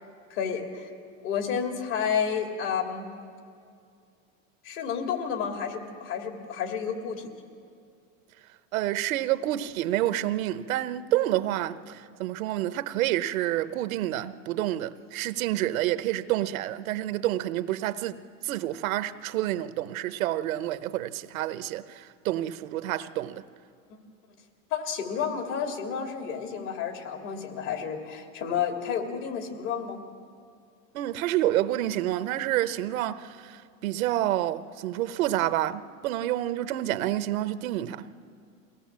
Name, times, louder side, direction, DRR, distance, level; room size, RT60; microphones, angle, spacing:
voice 1, 0.3-0.9 1.2-3.1 4.6-7.3 23.9-24.0 24.7-30.0, left 7 dB, 65° left, 3.1 m, -31 dB
voice 2, 8.7-23.4 30.9-38.0, right 14 dB, 85° right, 0.9 m, -28 dB
23.5 x 18.0 x 7.4 m
supercardioid pair, 130°, 40 cm